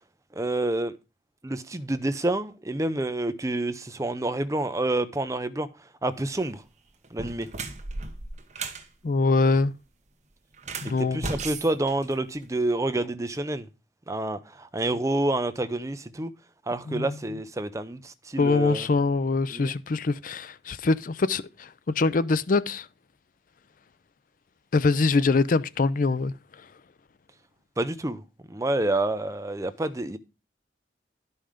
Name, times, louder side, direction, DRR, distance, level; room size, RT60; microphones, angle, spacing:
voice 1, 0.4-0.9 1.4-5.7 6.0-6.6 7.1-7.5 11.1-13.7 14.1-16.3 16.7-18.9 19.5-19.7 27.8-28.2 28.5-30.2, right 2 dB, 20° right, 0.7 m, -28 dB
sound 1, 6.3-6.5 7.0-8.9 10.5-12.6, right 3 dB, 40° right, 1.2 m, -36 dB
voice 2, 9.0-9.7 10.8-11.3 16.9-17.1 18.4-22.9 24.7-26.3, left 3 dB, 50° left, 0.5 m, -24 dB
12.0 x 5.6 x 5.0 m
head